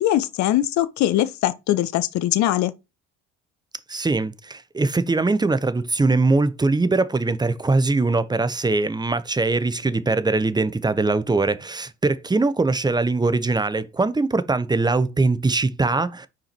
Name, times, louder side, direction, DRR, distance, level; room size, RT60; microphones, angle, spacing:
voice 1, 0.0-2.7, left 13 dB, 55° left, 0.8 m, -21 dB
voice 2, 3.9-16.3, right 3 dB, 10° right, 0.8 m, -22 dB
5.9 x 4.8 x 4.4 m
hypercardioid pair, 60°, 34 cm